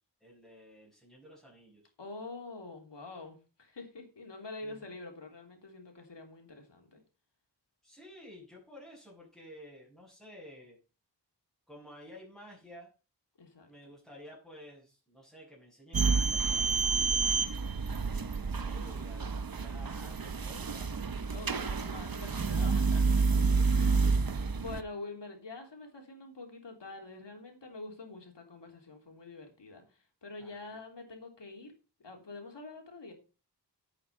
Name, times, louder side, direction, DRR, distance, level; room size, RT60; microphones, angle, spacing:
voice 1, 0.2-1.8 4.6-4.9 7.8-10.8 11.7-12.9 13.7-17.4 18.2-21.8 23.5-23.9 30.4-30.7, equal, ahead, -6 dB, 6.5 m, -53 dB
voice 2, 2.0-7.0 13.4-13.7 21.3-23.3 23.7-31.7 32.0-33.1, left 3 dB, 90° left, 3 dB, 3.4 m, -46 dB
sound 1, 15.9-24.8, right 4 dB, 55° right, 1.0 m, -29 dB
10.0 x 8.6 x 5.6 m, 0.33 s
wide cardioid pair, 75°, 41 cm